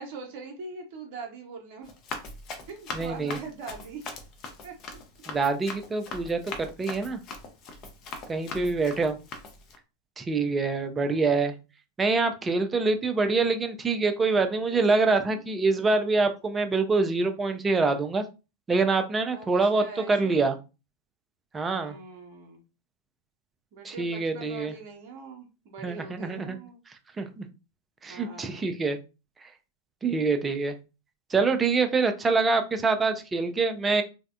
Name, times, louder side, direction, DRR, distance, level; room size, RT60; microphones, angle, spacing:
voice 1, 0.0-1.9 2.7-4.1 4.6-5.0 8.3-8.4 11.0-11.4 14.7-15.4 19.3-20.5 21.8-22.6 23.7-26.8 28.1-28.8, right 4 dB, 45° right, 2 dB, 0.7 m, -43 dB
Run, 1.8-9.8, left 3 dB, 35° left, 0.6 m, -41 dB
voice 2, 2.9-3.4 5.3-7.2 8.3-9.2 10.2-11.5 12.0-18.2 18.7-20.5 21.5-22.0 23.8-24.7 25.8-26.6 27.2-27.4 28.0-29.0 30.0-30.7 31.3-34.0, right 4 dB, 15° right, 7 dB, 0.4 m, -25 dB
3.3 x 2.1 x 2.4 m, 0.30 s
figure-of-eight pair, 90°, 0 cm